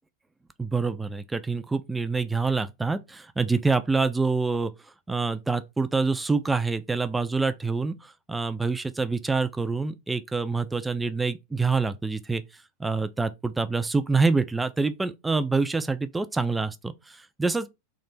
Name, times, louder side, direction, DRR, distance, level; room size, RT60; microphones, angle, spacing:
voice 1, 0.6-4.7 5.1-12.4 12.8-17.7, right 4 dB, 10° right, 0.4 m, -26 dB
3.4 x 2.8 x 4.1 m
figure-of-eight pair, 90°, 0 cm